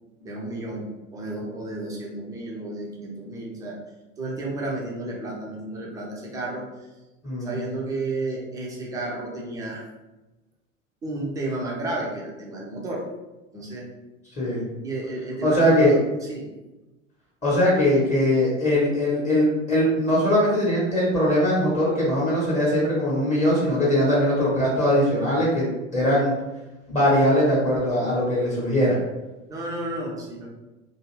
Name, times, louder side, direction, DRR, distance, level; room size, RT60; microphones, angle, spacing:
voice 1, 0.2-3.8 4.2-6.7 7.4-9.9 11.0-13.0 13.5-13.9 14.8-15.9 16.2-16.5 29.5-30.5, right 2 dB, 10° right, -3 dB, 0.4 m, -32 dB
voice 2, 7.2-7.5 14.4-14.6 15.4-16.0 17.4-25.6 25.9-26.3 26.9-29.0, equal, 20° left, -7 dB, 0.8 m, -21 dB
2.4 x 2.4 x 3.0 m, 1.1 s
figure-of-eight pair, 85°, 40 cm